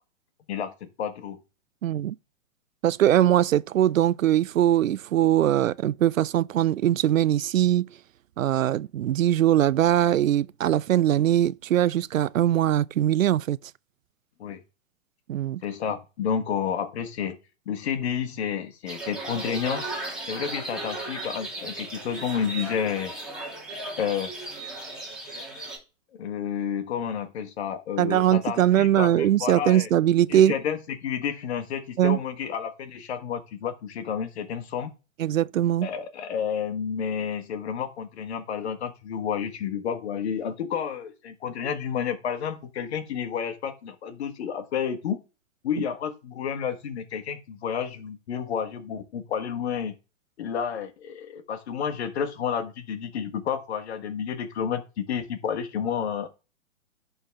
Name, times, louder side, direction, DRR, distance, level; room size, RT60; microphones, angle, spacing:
voice 1, 0.5-1.4 14.4-14.6 15.6-17.4 17.6-19.9 20.3-23.1 24.0-24.3 26.1-29.9 30.3-34.9 35.8-45.2 45.6-49.9 50.4-56.3, left 7 dB, 55° left, 1.5 m, -30 dB
voice 2, 1.8-2.1 2.8-7.9 8.4-13.6 15.3-15.6 28.0-30.5 32.0-32.2 35.2-35.9, right 12 dB, 80° right, 0.5 m, -21 dB
sound 1, 18.9-25.8, right 2 dB, ahead, 2.4 m, -36 dB
11.0 x 3.9 x 3.4 m
hypercardioid pair, 125°, 39 cm